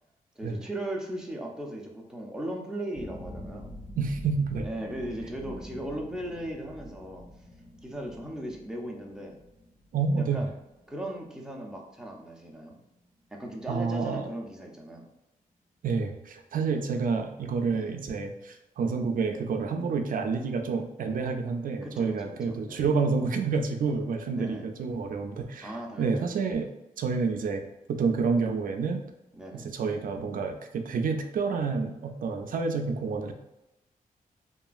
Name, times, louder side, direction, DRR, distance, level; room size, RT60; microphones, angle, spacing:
voice 1, 0.4-3.7 4.6-7.3 7.8-9.4 10.1-10.5 10.9-12.8 13.3-15.1 17.7-18.0 21.8-22.9 24.3-24.7 25.6-26.4 29.4-29.7, right 1 dB, 5° right, -1 dB, 0.6 m, -37 dB
sound 1, 2.9-13.1 13.4-14.1 14.5-14.6, left 1 dB, 40° left, 1.4 m, -46 dB
voice 2, 4.0-4.7 9.9-10.4 13.7-14.3 15.8-25.7 26.0-26.7 27.0-27.6 27.9-29.0 29.5-33.3, right 4 dB, 65° right, 5 dB, 0.4 m, -29 dB
2.9 x 2.4 x 2.4 m, 0.93 s
cardioid pair, 75°, 15 cm